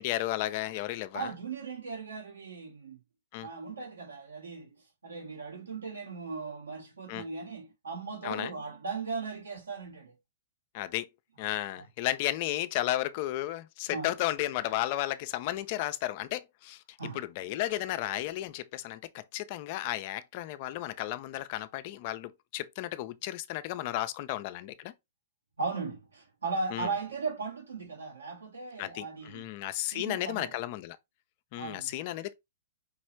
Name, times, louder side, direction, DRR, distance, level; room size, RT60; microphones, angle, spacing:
voice 1, 0.0-1.3 3.3-3.5 7.1-7.2 8.2-8.5 10.7-11.1 11.4-16.8 17.1-24.9 26.7-26.9 28.8-31.0 31.5-32.3, left 15 dB, 45° left, 0.5 m, -33 dB
voice 2, 1.1-3.0 3.4-4.7 5.0-10.1 11.8-11.9 13.9-14.1 17.0-17.2 25.6-29.5 29.9-30.6 31.6-31.9, right 4 dB, 75° right, 2.0 m, -37 dB
5.1 x 3.1 x 3.1 m
figure-of-eight pair, 110°, 0 cm